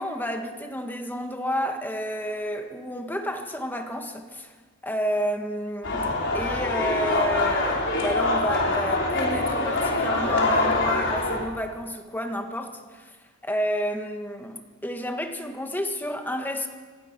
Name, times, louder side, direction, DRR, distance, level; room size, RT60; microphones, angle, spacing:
voice 1, 0.0-4.5 4.8-13.2 13.4-16.7, equal, 10° left, 5 dB, 1.7 m, -30 dB
sound 1, 5.8-11.4, left 2 dB, 55° left, 4.6 m, -24 dB
25.0 x 19.5 x 6.1 m, 1.5 s
head